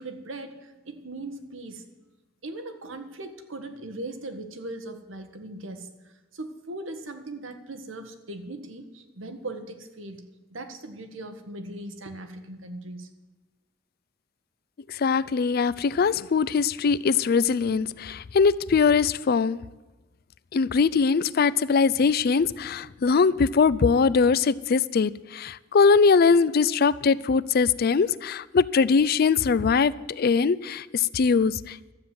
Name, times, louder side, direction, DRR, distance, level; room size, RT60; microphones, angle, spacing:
voice 1, 0.0-1.8 2.4-5.9 6.3-10.2 10.5-13.1, right 2 dB, 90° right, 7 dB, 1.4 m, -39 dB
voice 2, 14.9-19.6 20.5-31.9, left 5 dB, 50° left, 18 dB, 0.4 m, -22 dB
12.5 x 7.5 x 9.3 m, 1.1 s
head